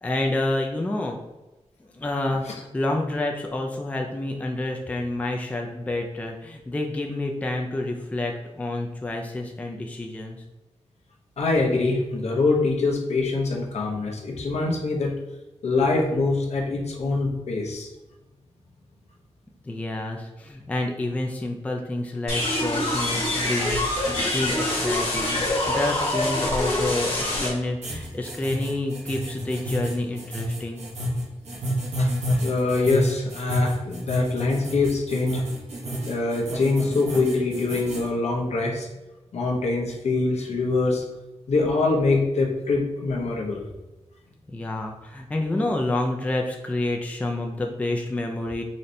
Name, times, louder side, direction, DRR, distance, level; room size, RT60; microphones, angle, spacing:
voice 1, 0.0-1.2 1.9-10.4 19.7-30.8 44.5-48.6, left 2 dB, 10° left, 1 dB, 0.3 m, -28 dB
voice 2, 11.4-15.1 15.6-17.9 32.0-32.1 32.4-35.4 36.0-38.9 39.3-41.0 41.5-43.6, left 3 dB, 70° left, -1 dB, 0.8 m, -24 dB
sound 1, 22.3-27.5, left 1 dB, 55° left, 1.5 m, -25 dB
sound 2, 27.8-38.1, equal, 75° right, 0.9 m, -29 dB
4.1 x 3.1 x 2.6 m, 1.1 s
wide cardioid pair, 180°, 11 cm